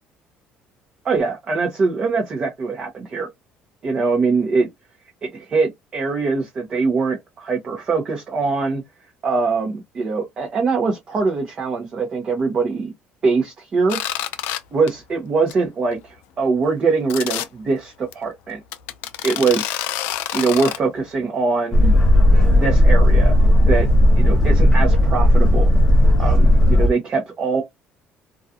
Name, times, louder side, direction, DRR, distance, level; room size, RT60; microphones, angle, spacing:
voice 1, 1.0-3.3 3.8-4.7 5.2-8.8 9.2-12.9 13.2-14.0 14.7-18.6 19.2-19.8 20.3-22.0 22.4-23.9 24.2-25.7 26.2-27.6, right 4 dB, 30° right, 0.6 m, -22 dB
sound 1, 13.9-14.6 14.9-15.1 15.5-15.6 15.9-16.0 17.1-17.5 18.1-18.2 18.7-20.8, left 13 dB, 85° left, 0.4 m, -27 dB
Boat Water vehicle, 21.7-26.9, left 1 dB, 20° left, 0.7 m, -14 dB
2.3 x 2.3 x 2.6 m
cardioid pair, 160°, 3 cm